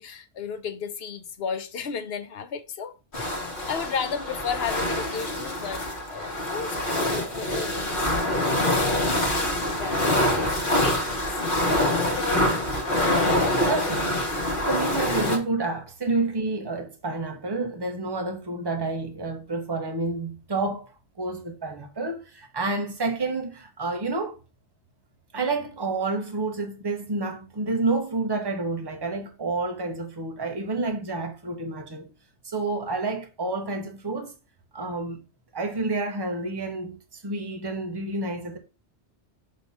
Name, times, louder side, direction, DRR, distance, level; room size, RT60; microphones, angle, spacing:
voice 1, 0.0-8.0 8.3-10.2 10.8-11.2 12.0-12.6, left 6 dB, 65° left, 1.0 m, -34 dB
sound 1, 3.1-15.4, left 1 dB, 50° left, 1.6 m, -25 dB
voice 2, 13.7-14.2 14.7-20.9 21.2-24.4 25.3-32.1 32.4-34.3 34.7-35.2 35.5-38.6, right 3 dB, 25° right, 1.0 m, -29 dB
6.4 x 3.0 x 5.3 m
omnidirectional pair, 1.1 m